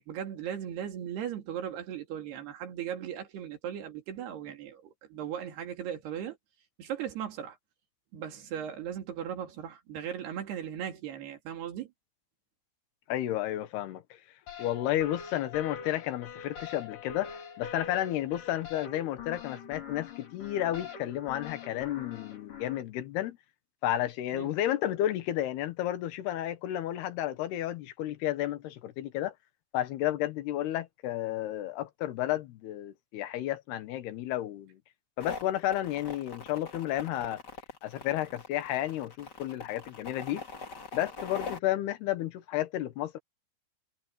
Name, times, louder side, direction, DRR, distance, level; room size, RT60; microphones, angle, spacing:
voice 1, 0.0-6.4 6.8-7.6 8.1-11.9 24.3-24.5, right 9 dB, 85° right, 4.7 m, -37 dB
voice 2, 13.1-14.0 14.6-23.4 23.8-29.3 29.7-34.8 35.2-37.4 37.8-40.4 40.9-43.2, left 13 dB, 85° left, 3.3 m, -32 dB
sound 1, 14.5-22.8, left 7 dB, 55° left, 4.9 m, -43 dB
sound 2, 35.2-41.6, left 4 dB, 30° left, 2.6 m, -42 dB
omnidirectional pair, 4.5 m